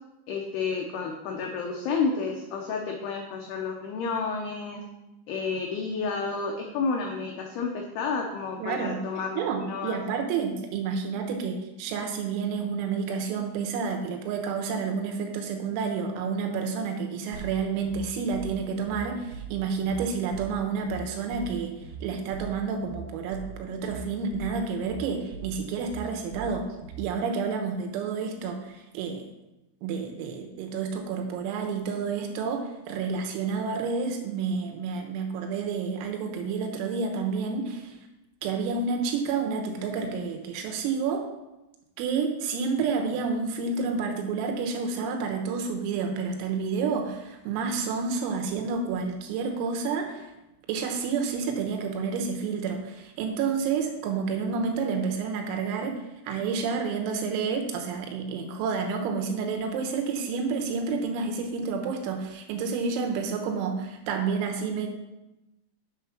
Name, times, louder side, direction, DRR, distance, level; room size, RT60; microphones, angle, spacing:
voice 1, 0.3-4.8 5.3-10.0, left 4 dB, 90° left, 1 dB, 2.3 m, -30 dB
voice 2, 8.6-9.0 9.4-21.8 22.0-26.7 27.0-29.2 29.8-38.0 38.4-41.3 42.0-50.3 50.7-64.9, right 5 dB, 90° right, 4 dB, 3.9 m, -29 dB
sound 1, 17.3-27.1, right 7 dB, 70° right, 3.0 m, -41 dB
8.2 x 6.8 x 5.9 m, 0.98 s
omnidirectional pair, 5.9 m